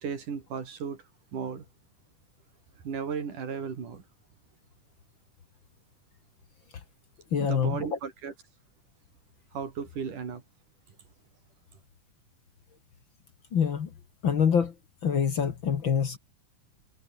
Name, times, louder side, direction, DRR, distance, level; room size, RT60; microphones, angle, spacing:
voice 1, 0.0-1.0 1.3-1.7 2.8-4.0 7.4-8.3 9.5-10.4, right 6 dB, 90° right, 5.2 m, -35 dB
voice 2, 7.3-8.0 13.5-13.9 14.2-14.7 15.0-16.2, left 7 dB, 45° left, 1.9 m, -25 dB
omnidirectional pair, 3.5 m